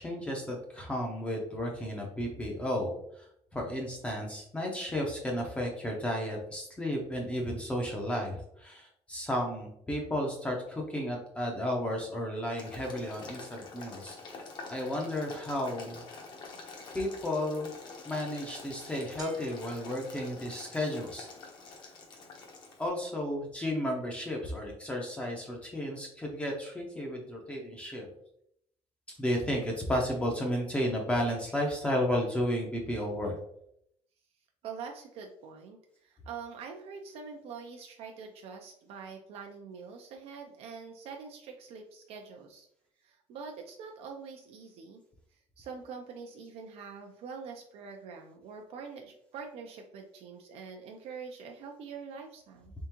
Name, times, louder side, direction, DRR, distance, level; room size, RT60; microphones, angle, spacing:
voice 1, 0.0-3.3 3.5-14.4 14.7-16.0 16.9-17.7 18.0-21.3 22.8-28.1 29.2-33.4, left 1 dB, 10° left, -1 dB, 0.6 m, -33 dB
Boiling, 12.6-22.9, left 3 dB, 40° left, 0.8 m, -47 dB
sound 1, 19.2-21.1, left 1 dB, 35° right, 0.8 m, -43 dB
voice 2, 34.6-42.7 43.0-45.0 45.6-52.7, right 5 dB, 60° right, 3 dB, 0.5 m, -45 dB
3.6 x 3.4 x 2.9 m, 0.72 s
cardioid pair, 175°, 12 cm